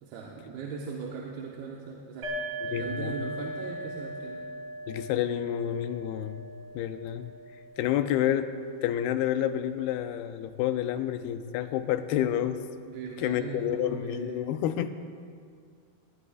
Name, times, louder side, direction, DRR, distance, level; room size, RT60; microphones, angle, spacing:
voice 1, 0.0-4.5 12.9-14.5, right 5 dB, 80° right, -2 dB, 2.9 m, -39 dB
sound 1, 2.2-9.7, right 1 dB, 40° right, 2.4 m, -40 dB
voice 2, 2.7-3.3 4.9-6.5 6.8-7.3 7.8-8.5 8.8-12.6 13.2-14.9, left 11 dB, 85° left, 9 dB, 2.5 m, -29 dB
19.0 x 19.0 x 2.4 m, 2.2 s
omnidirectional pair, 4.4 m